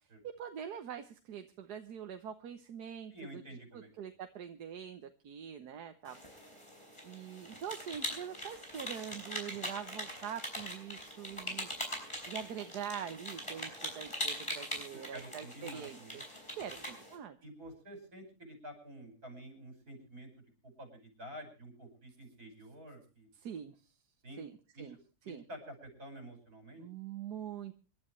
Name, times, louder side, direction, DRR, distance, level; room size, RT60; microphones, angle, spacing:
voice 1, 0.4-3.4 3.7-6.2 7.0-11.7 12.3-16.2 16.5-17.4 23.4-23.9 24.4-25.0 25.3-25.4 26.8-27.7, right 8 dB, 90° right, 7 dB, 1.6 m, -44 dB
voice 2, 3.1-3.9 10.1-10.2 15.1-16.2 16.7-16.9 17.4-20.3 20.6-23.3 24.2-24.4 24.7-24.9 25.2-26.8, right 1 dB, 70° right, 5 dB, 6.0 m, -49 dB
sound 1, 6.1-17.2, equal, 20° left, 5.1 m, -42 dB
27.0 x 12.0 x 3.1 m, 0.34 s
omnidirectional pair, 1.6 m